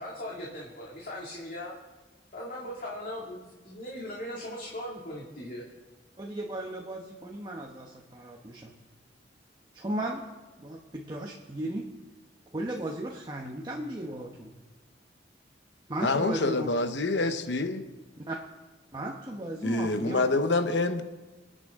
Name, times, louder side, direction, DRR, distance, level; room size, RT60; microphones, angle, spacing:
voice 1, 0.0-1.7 2.3-5.7, left 1 dB, 50° left, 2.4 m, -39 dB
voice 2, 6.2-8.7 9.7-10.2 10.6-11.8 12.5-14.5 15.9-16.7 18.2-18.4 18.9-20.3, right 1 dB, 25° right, 1.1 m, -35 dB
voice 3, 16.0-17.8 19.6-21.0, left 2 dB, 70° left, 1.0 m, -26 dB
26.5 x 9.0 x 3.7 m
head